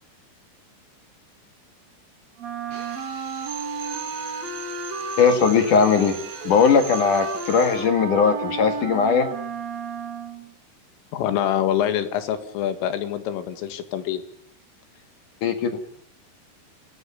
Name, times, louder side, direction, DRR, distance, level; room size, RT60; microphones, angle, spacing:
Wind instrument woodwind instrument, 2.4-10.5, right 5 dB, 40° right, 3.3 m, -33 dB
Drill, 2.7-8.0, right 5 dB, 60° right, 5.5 m, -39 dB
voice 1, 5.2-6.2 6.4-9.3 15.4-15.7, left 6 dB, 55° left, 8 dB, 2.6 m, -19 dB
voice 2, 11.1-14.2, left 10 dB, 85° left, 10 dB, 4.5 m, -25 dB
28.5 x 19.0 x 6.9 m, 0.68 s
omnidirectional pair, 5.6 m